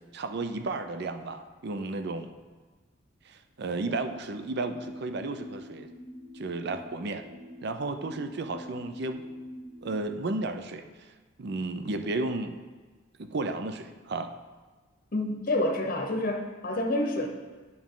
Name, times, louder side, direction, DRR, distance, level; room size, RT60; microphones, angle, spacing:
voice 1, 0.1-2.3 3.3-5.9 6.3-7.2 7.6-9.2 9.8-11.1 11.4-12.6 13.2-14.3, right 2 dB, 55° right, 7 dB, 0.5 m, -33 dB
sound 1, 4.3-10.0, left 1 dB, 15° right, 0.8 m, -45 dB
voice 2, 15.1-17.3, left 1 dB, 40° left, 2 dB, 0.8 m, -28 dB
9.3 x 6.0 x 3.8 m, 1.3 s
head